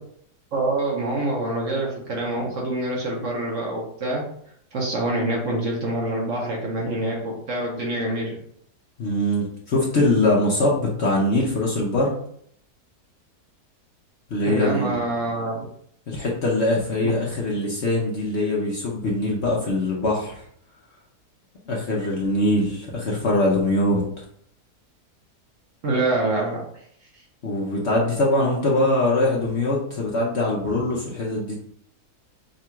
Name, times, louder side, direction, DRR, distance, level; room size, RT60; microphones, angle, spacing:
voice 1, 0.5-4.2 4.7-8.4 14.5-15.7 25.8-26.6, right 2 dB, 55° right, -2 dB, 1.1 m, -26 dB
voice 2, 9.0-12.1 14.3-14.9 16.1-20.4 21.7-24.0 27.4-31.5, left 1 dB, 55° left, -4 dB, 0.9 m, -22 dB
3.8 x 2.4 x 4.3 m, 0.67 s
omnidirectional pair, 1.7 m